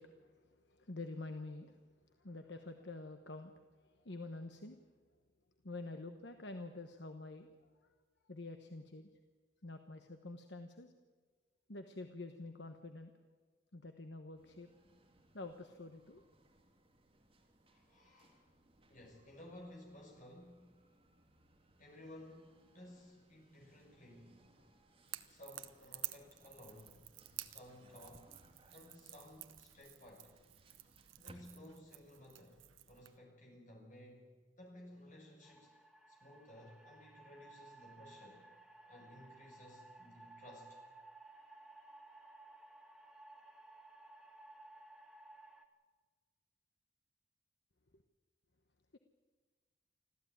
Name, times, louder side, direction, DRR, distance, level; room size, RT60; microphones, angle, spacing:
voice 1, 0.0-1.8 2.1-4.8 5.6-7.9 8.3-9.1 9.6-10.9 11.7-13.1 13.7-14.7 15.3-16.2 48.9-49.0, left 2 dB, 60° left, 6 dB, 1.2 m, -48 dB
sound 1, 14.3-31.4, right 1 dB, 30° right, 2.6 m, -67 dB
voice 2, 17.7-18.4 18.9-20.7 21.8-24.4 25.2-27.1 27.4-28.3 28.7-30.3 31.2-35.8 36.1-38.5 38.9-40.8, left 1 dB, 40° left, 1 dB, 5.9 m, -56 dB
Crackle / Crack, 25.1-33.2, right 14 dB, 85° right, 1.0 m, -51 dB
sound 2, 35.4-45.6, right 2 dB, ahead, 1.5 m, -58 dB
25.5 x 14.5 x 9.4 m, 1.4 s
head